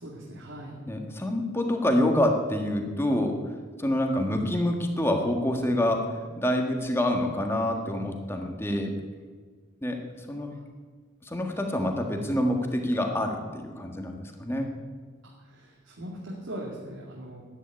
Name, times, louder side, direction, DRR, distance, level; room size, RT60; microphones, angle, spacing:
voice 1, 0.0-0.7 15.5-17.4, right 1 dB, 80° right, -3 dB, 2.4 m, -40 dB
voice 2, 0.9-3.4 3.8-8.9 9.8-10.5 11.2-14.7, left 1 dB, 10° left, 3 dB, 1.6 m, -27 dB
11.0 x 9.6 x 9.8 m, 1.5 s
head